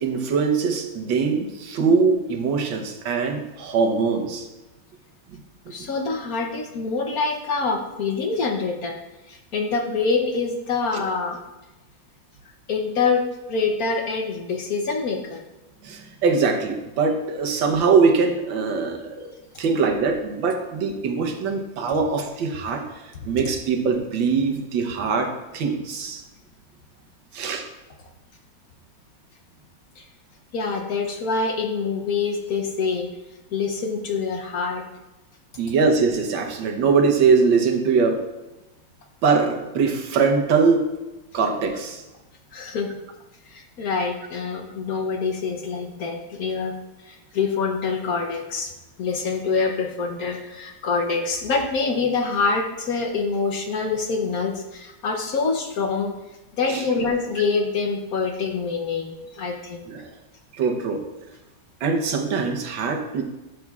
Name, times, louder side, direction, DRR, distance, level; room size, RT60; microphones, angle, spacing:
voice 1, 0.0-4.5 10.9-11.0 15.8-19.3 19.6-22.8 23.2-26.2 27.3-27.6 35.6-38.2 39.2-40.9 41.3-42.0 56.7-56.8 59.9-60.1 60.6-61.0 61.8-63.2, right 5 dB, 80° right, 4 dB, 1.7 m, -22 dB
voice 2, 5.7-9.0 9.3-11.4 12.7-13.2 13.5-15.4 30.0-30.1 30.5-33.1 33.5-34.9 42.5-42.9 43.5-46.8 47.0-48.7 49.0-56.1 56.6-59.9, left 4 dB, 60° left, 3 dB, 1.1 m, -25 dB
12.0 x 6.5 x 2.4 m, 1.0 s
omnidirectional pair, 2.0 m